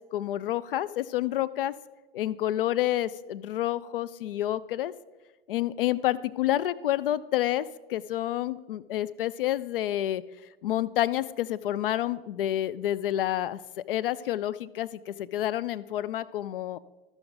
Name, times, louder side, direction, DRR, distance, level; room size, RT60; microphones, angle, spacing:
voice 1, 0.1-1.7 2.1-4.9 5.5-10.2 10.6-16.8, left 13 dB, 65° left, 17 dB, 0.5 m, -29 dB
13.5 x 6.1 x 3.9 m, 1.1 s
figure-of-eight pair, 95°, 30 cm